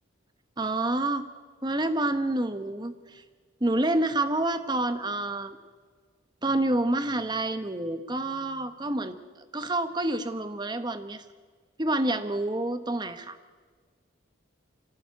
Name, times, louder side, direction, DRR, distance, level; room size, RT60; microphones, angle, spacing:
voice 1, 0.6-1.3 1.6-3.2 3.6-5.6 6.4-11.2 11.8-13.4, right 2 dB, 20° right, 10 dB, 1.1 m, -28 dB
25.0 x 16.5 x 9.4 m, 1.5 s
head